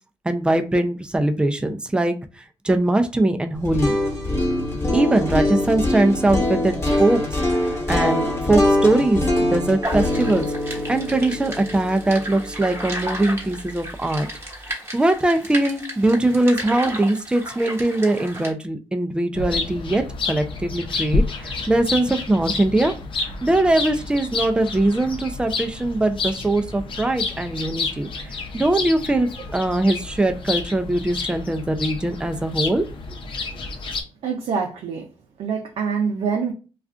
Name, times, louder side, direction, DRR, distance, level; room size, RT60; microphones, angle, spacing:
voice 1, 0.2-3.9 4.9-7.2 7.5-14.3 14.9-22.9 23.4-32.8, right 2 dB, 10° right, 0.4 m, -21 dB
sound 1, 3.6-13.6, left 1 dB, 25° left, 1.3 m, -23 dB
sound 2, 9.8-18.5, right 1 dB, 25° right, 1.2 m, -33 dB
sound 3, 19.4-34.0, left 3 dB, 55° left, 0.7 m, -29 dB
voice 2, 34.2-35.1 35.4-36.5, right 6 dB, 70° right, 0.5 m, -25 dB
2.4 x 2.4 x 3.4 m
cardioid pair, 75°, 10 cm